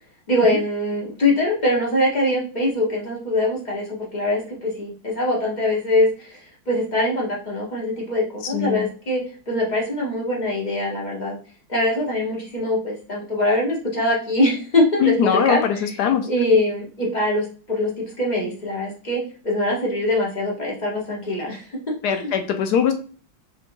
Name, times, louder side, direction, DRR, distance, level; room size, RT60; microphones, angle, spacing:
voice 1, 0.3-11.3 11.7-15.1 15.5-15.8 16.3-17.9 18.2-22.3, left 1 dB, 30° left, -4 dB, 0.8 m, -23 dB
voice 2, 8.4-8.9 15.0-16.3 22.0-22.9, left 7 dB, 70° left, 6 dB, 1.0 m, -21 dB
5.6 x 2.6 x 2.6 m, 0.39 s
omnidirectional pair, 2.1 m